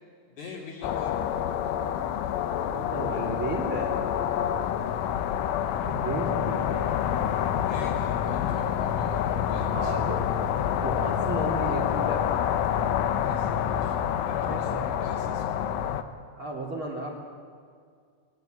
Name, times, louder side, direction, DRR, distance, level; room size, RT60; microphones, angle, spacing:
voice 1, 0.4-1.3 7.7-10.0 13.2-15.6, left 4 dB, 40° left, -6 dB, 4.0 m, -44 dB
sound 1, 0.8-16.0, left 9 dB, 80° left, 3.4 m, -27 dB
voice 2, 2.7-4.0 5.8-7.0 9.7-10.2 10.8-12.3 14.5-14.9 16.4-17.2, right 2 dB, 30° right, -1 dB, 3.0 m, -33 dB
26.5 x 18.5 x 9.2 m, 2.1 s
omnidirectional pair, 5.7 m